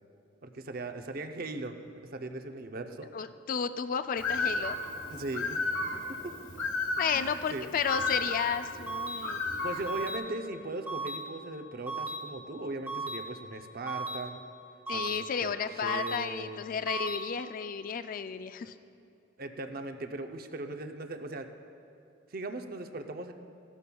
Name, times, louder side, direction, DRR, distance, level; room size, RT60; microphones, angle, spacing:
voice 1, 0.4-1.8 2.1-3.1 5.1-5.6 7.1-7.7 9.6-14.4 14.9-16.6 19.4-21.5 22.3-23.3, right 2 dB, 50° right, 6 dB, 0.6 m, -39 dB
voice 2, 3.1-4.8 7.0-9.4 14.9-18.7, left 7 dB, 45° left, 11 dB, 0.3 m, -32 dB
Bird, 4.2-10.2, left 3 dB, 80° left, 1.3 m, -34 dB
sound 1, 7.9-8.2 8.9-9.2 9.9-10.2 10.9-11.2 11.9-12.2 12.9-13.2 13.9-14.2 14.9-15.2 15.9-16.2 16.9-17.2, right 3 dB, 10° right, 1.5 m, -35 dB
16.5 x 12.0 x 2.3 m, 2.6 s
head